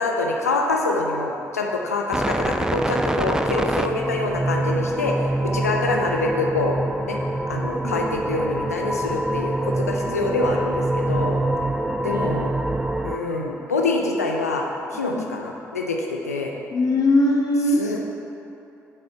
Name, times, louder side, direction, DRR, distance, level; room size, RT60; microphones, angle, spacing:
voice 1, 0.0-6.8 7.1-7.2 7.5-11.4 12.0-12.5 13.0-14.7 14.9-16.5 17.8-18.0, left 3 dB, 85° left, 1 dB, 0.5 m, -25 dB
sound 1, 2.1-13.2, right 1 dB, 10° right, 0.4 m, -25 dB
voice 2, 10.0-10.4 12.0-12.3 15.1-15.2 16.7-17.9, left 1 dB, 50° left, 0 dB, 0.9 m, -22 dB
7.5 x 6.8 x 4.3 m, 2.9 s
figure-of-eight pair, 40°, 8 cm